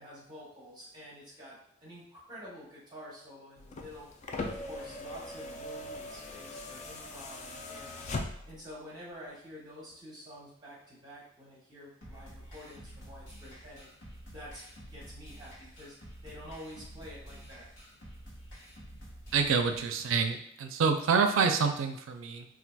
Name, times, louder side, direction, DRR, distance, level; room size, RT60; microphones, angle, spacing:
voice 1, 0.0-4.1 4.4-8.1 8.4-13.9 14.3-15.9 16.2-17.7, equal, 20° right, -6 dB, 0.7 m, -49 dB
sound 1, 3.6-8.7 9.9-10.0, left 2 dB, 35° left, 0.3 m, -40 dB
sound 2, 12.0-20.0, equal, 75° left, 1.1 m, -49 dB
voice 2, 19.3-22.5, right 5 dB, 85° right, 6 dB, 0.4 m, -27 dB
4.0 x 2.4 x 2.2 m, 0.75 s
head